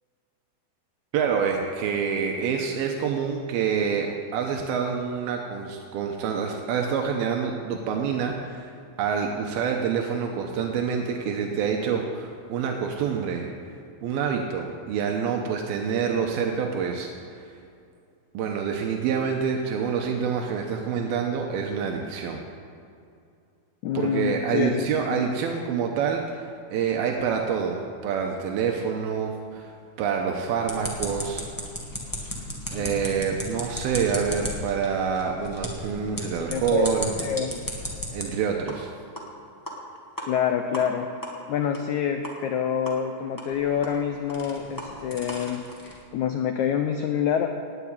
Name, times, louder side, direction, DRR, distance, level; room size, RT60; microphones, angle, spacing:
voice 1, 1.1-8.7 9.0-13.5 14.0-17.5 18.3-22.4 23.9-29.7 30.0-31.5 32.2-32.4 32.7-37.1 38.1-38.9, right 6 dB, 85° right, 2 dB, 2.8 m, -27 dB
voice 2, 23.8-25.2 32.8-33.4 36.5-36.9 37.2-37.6 40.3-41.1 41.5-47.5, left 8 dB, 90° left, 5 dB, 1.6 m, -27 dB
sound 1, 30.7-38.2 38.7-38.8 39.2-39.3 39.7-39.8 40.2-40.3 40.7-40.8 41.2-41.3 41.7-41.8 42.2-42.3 42.9-43.0 43.4-46.0, equal, 20° left, 0.5 m, -35 dB
17.5 x 6.0 x 9.8 m, 2.5 s
omnidirectional pair, 4.3 m